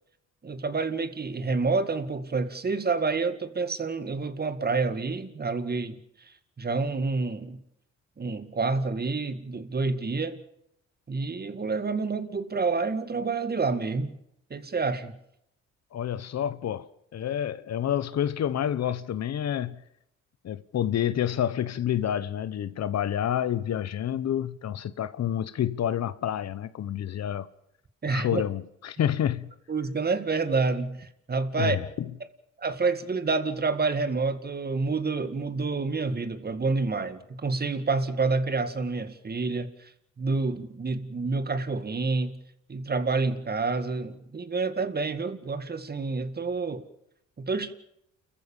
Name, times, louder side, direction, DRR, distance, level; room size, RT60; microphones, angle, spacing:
voice 1, 0.4-6.0 6.6-7.6 8.2-10.4 11.1-14.2 14.5-15.1 28.0-28.4 29.7-31.8 32.6-39.9 40.2-42.4 42.7-46.8 47.4-47.7, right 4 dB, 30° right, 2.1 m, -28 dB
voice 2, 15.9-19.8 20.4-27.5 28.0-29.5 31.6-32.1, left 10 dB, 60° left, 1.2 m, -29 dB
29.5 x 14.5 x 7.3 m
cardioid pair, 90°, 30 cm